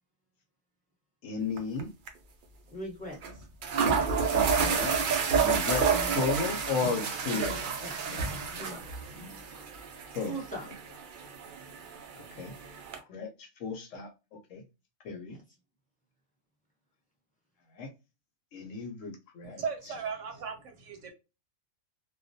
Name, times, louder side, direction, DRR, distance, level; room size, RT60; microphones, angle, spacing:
voice 1, 1.2-1.9 4.3-5.0 5.4-7.6 10.1-10.3 12.4-12.5 13.1-14.1 14.5-14.6 15.0-15.4 17.8-17.9 18.5-19.6, left 4 dB, 70° left, 0.9 m, -34 dB
sound 1, 1.6-1.8 2.1-2.2 3.2-3.3 3.6-13.0, right 6 dB, 90° right, 0.4 m, -30 dB
voice 2, 2.7-3.5 5.9-6.2 7.3-7.5 7.8-8.2 8.5-9.0 10.2-10.7 15.3-15.4, right 1 dB, 5° left, 0.7 m, -41 dB
voice 3, 19.4-21.1, right 6 dB, 70° right, 0.9 m, -37 dB
2.3 x 2.1 x 2.6 m
omnidirectional pair, 1.4 m